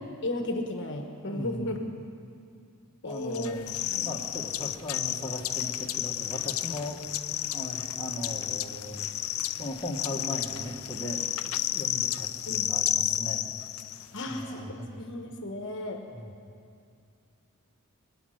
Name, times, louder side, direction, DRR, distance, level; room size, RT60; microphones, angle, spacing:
voice 1, 0.2-1.8 3.0-3.6 3.9-4.1 12.5-12.7 14.1-16.0, left 1 dB, 60° left, 3 dB, 1.2 m, -34 dB
voice 2, 1.3-1.8 3.0-7.0 7.5-9.1 9.6-11.2 11.7-13.5 14.3-15.0 16.1-16.3, left 1 dB, 20° left, -2 dB, 1.6 m, -38 dB
sound 1, 3.3-14.2, left 13 dB, 80° left, 0.5 m, -32 dB
24.0 x 8.9 x 6.5 m, 2.4 s
head